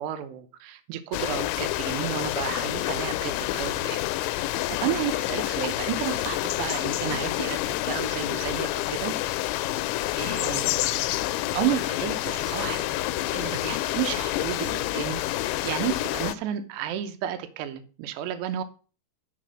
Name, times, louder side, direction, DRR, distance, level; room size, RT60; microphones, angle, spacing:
voice 1, 0.0-9.5 10.2-11.1 11.5-12.8 13.3-18.6, right 11 dB, 80° right, 2.9 m, -32 dB
sound 1, 1.1-16.3, left 16 dB, 90° left, 2.9 m, -28 dB
6.7 x 6.0 x 6.2 m
omnidirectional pair, 5.2 m